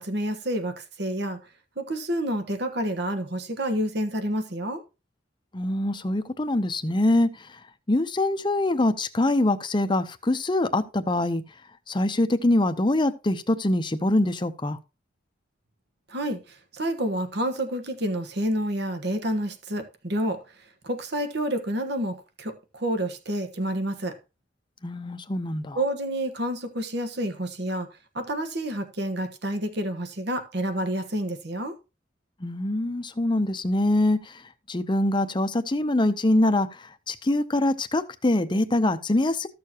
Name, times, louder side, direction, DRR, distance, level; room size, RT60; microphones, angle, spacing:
voice 1, 0.0-1.4 1.8-4.8 16.1-20.4 20.8-24.2 25.7-27.9 28.1-31.7, right 1 dB, 60° right, 1.3 m, -29 dB
voice 2, 5.5-7.6 7.9-11.4 11.9-14.8 24.8-25.8 32.4-34.4 34.7-39.5, left 1 dB, 25° left, 0.7 m, -24 dB
14.0 x 6.7 x 2.9 m
head